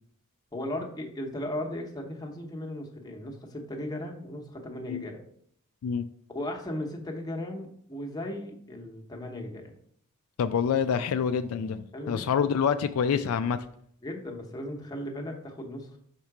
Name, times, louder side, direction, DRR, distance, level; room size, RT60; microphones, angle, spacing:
voice 1, 0.5-5.2 6.3-9.7 11.9-12.2 14.0-16.0, left 1 dB, 15° left, 1 dB, 0.9 m, -36 dB
voice 2, 10.4-13.6, left 7 dB, 70° left, 9 dB, 0.3 m, -27 dB
5.7 x 3.7 x 4.6 m, 0.65 s
head